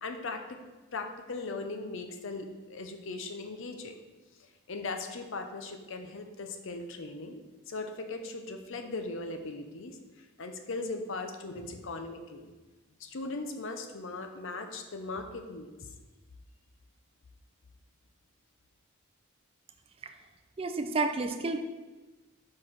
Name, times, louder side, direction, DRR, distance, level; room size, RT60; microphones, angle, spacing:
voice 1, 0.0-0.6 0.9-4.0 4.7-7.4 7.7-12.5 13.0-15.9, left 3 dB, 65° left, 6 dB, 0.7 m, -39 dB
voice 2, 20.6-21.6, right 3 dB, 25° right, 7 dB, 0.4 m, -30 dB
4.8 x 4.7 x 5.6 m, 1.2 s
head